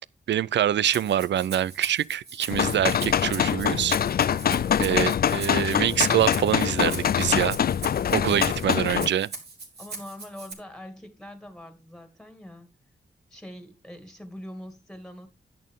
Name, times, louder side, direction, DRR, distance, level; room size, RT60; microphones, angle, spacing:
voice 1, 0.3-4.0 4.8-7.6 8.1-9.3, right 10 dB, 80° right, 0.5 m, -25 dB
Rattle (instrument), 0.9-10.5, right 4 dB, 65° right, 3.2 m, -40 dB
sound 1, 2.5-9.1, left 9 dB, 55° left, 0.4 m, -24 dB
voice 2, 9.8-12.7 13.3-15.3, left 1 dB, 5° left, 2.3 m, -43 dB
10.5 x 8.6 x 3.7 m
cardioid pair, 90°, 18 cm